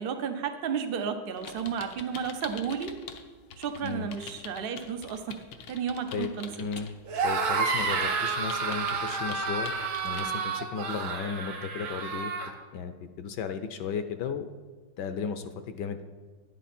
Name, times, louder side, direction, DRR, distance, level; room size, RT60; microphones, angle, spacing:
voice 1, 0.0-2.9 3.6-5.4 5.7-6.5, right 7 dB, 90° right, 6 dB, 0.5 m, -32 dB
sound 1, 1.4-3.2 3.5-10.3, left 7 dB, 85° left, 1.7 m, -45 dB
voice 2, 6.6-6.9 7.2-9.7 10.0-12.3 12.7-14.5 15.0-16.0, left 6 dB, 70° left, 9 dB, 1.1 m, -35 dB
sound 2, 7.1-12.5, right 5 dB, 75° right, 2.1 m, -30 dB
12.0 x 10.5 x 4.2 m, 1.4 s
omnidirectional pair, 2.2 m